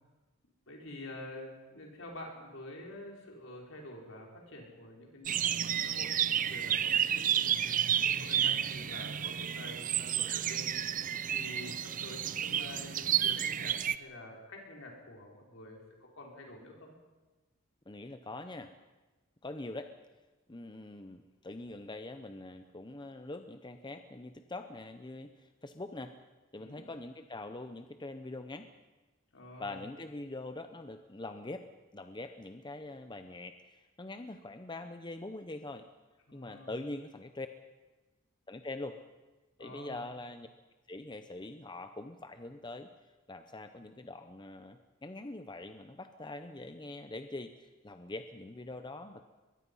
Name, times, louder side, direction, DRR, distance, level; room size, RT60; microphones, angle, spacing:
voice 1, 0.7-15.8 16.1-16.9 26.6-27.0 29.3-29.8 36.3-36.7 39.6-40.1, left 1 dB, 70° left, -1 dB, 5.2 m, -48 dB
sound 1, 5.3-14.0, right 9 dB, 40° right, 0.6 m, -31 dB
voice 2, 17.9-18.7 19.4-19.9 20.5-26.1 26.5-28.7 29.6-31.7 31.9-35.8 36.3-37.5 38.5-39.0 39.6-40.5 40.9-42.9 43.3-49.2, left 2 dB, 20° left, 8 dB, 0.8 m, -43 dB
22.5 x 22.5 x 5.6 m, 1.2 s
head